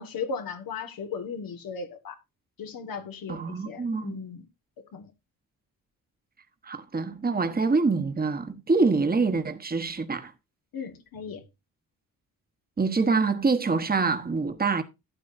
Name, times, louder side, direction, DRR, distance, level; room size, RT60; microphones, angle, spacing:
voice 1, 0.0-2.1 2.6-4.4 4.9-5.1 10.7-11.4, left 5 dB, 85° left, 1.7 m, -36 dB
voice 2, 3.3-4.2 6.6-10.3 12.8-14.8, right 4 dB, 25° right, 1.2 m, -25 dB
12.5 x 8.6 x 2.6 m
cardioid pair, 75°, 34 cm